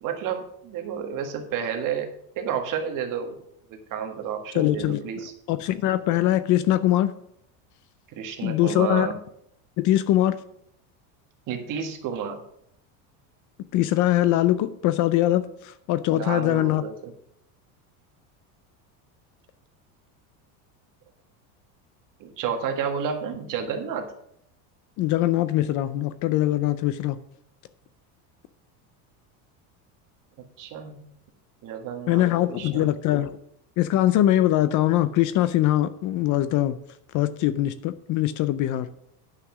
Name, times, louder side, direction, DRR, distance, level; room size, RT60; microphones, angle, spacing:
voice 1, 0.0-2.1 2.4-3.3 3.7-5.3 8.1-9.2 11.5-12.4 16.1-17.1 22.2-24.1 30.6-31.1 31.6-32.9, right 7 dB, 45° right, 5 dB, 1.6 m, -31 dB
voice 2, 4.6-5.0 5.5-7.1 8.4-9.1 9.8-10.4 13.7-16.8 25.0-27.2 32.1-33.3 33.8-36.8 37.1-38.9, left 14 dB, 45° left, 14 dB, 0.5 m, -22 dB
9.9 x 5.8 x 6.1 m, 0.73 s
supercardioid pair, 140°, 44 cm